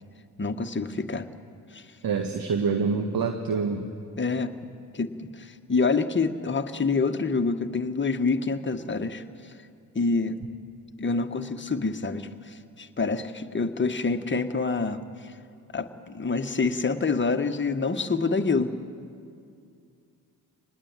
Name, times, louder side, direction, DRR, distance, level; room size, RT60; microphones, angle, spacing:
voice 1, 0.4-1.3 1.7-1.9 4.1-4.5 4.9-9.2 9.9-10.4 11.0-15.3 15.7-18.7, left 4 dB, 25° left, 7 dB, 1.6 m, -27 dB
voice 2, 2.0-3.9, right 5 dB, 55° right, 6 dB, 1.7 m, -26 dB
25.0 x 19.5 x 9.1 m, 2.4 s
hypercardioid pair, 50°, 41 cm